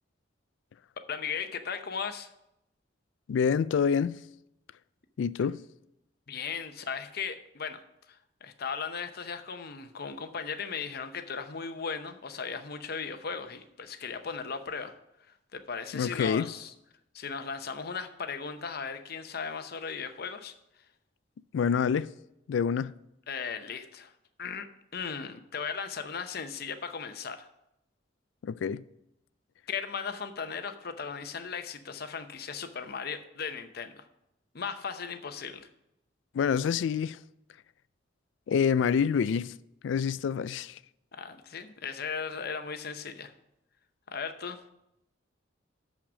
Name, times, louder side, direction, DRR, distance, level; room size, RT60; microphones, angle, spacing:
voice 1, 1.1-2.3 6.3-7.8 8.1-14.9 15.5-16.7 17.1-20.5 23.3-24.1 24.4-24.7 24.9-27.5 29.7-34.0 34.5-35.7 41.1-43.3 44.1-44.6, left 6 dB, 55° left, 0.7 m, -37 dB
voice 2, 3.3-4.2 5.2-5.6 15.9-16.5 21.5-22.1 22.5-22.9 28.4-28.8 36.3-37.2 38.5-39.5 39.8-40.8, left 7 dB, 70° left, 0.3 m, -27 dB
6.5 x 6.1 x 7.0 m
head